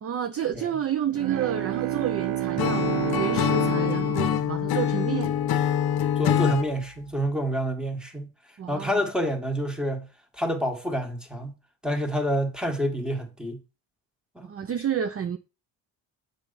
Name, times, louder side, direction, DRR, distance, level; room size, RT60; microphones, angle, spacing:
voice 1, 0.0-2.9 3.2-5.3 8.6-9.0 14.5-15.4, right 9 dB, 30° right, 0.6 m, -30 dB
Bowed string instrument, 1.1-5.6, right 13 dB, 75° right, 0.9 m, -30 dB
Acoustic guitar / Strum, 2.6-6.7, left 9 dB, 55° left, 0.8 m, -25 dB
voice 2, 6.2-8.3 8.7-10.1 10.3-11.5 11.8-13.6 14.4-14.5, equal, ahead, 1.8 m, -28 dB
7.0 x 5.5 x 4.2 m
supercardioid pair, 80°, 45 cm